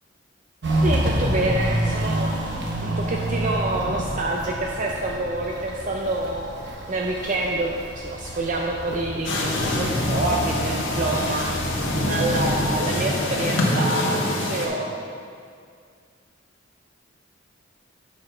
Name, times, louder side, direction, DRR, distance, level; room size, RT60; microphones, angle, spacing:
Walk footsteps, 0.6-13.0, right 1 dB, 60° right, 1.0 m, -29 dB
voice 1, 0.8-11.5 12.1-14.9, right 2 dB, 40° right, 0 dB, 0.5 m, -27 dB
sound 1, 9.2-14.7, left 1 dB, 75° left, 1.3 m, -25 dB
8.7 x 5.6 x 4.5 m, 2.3 s
head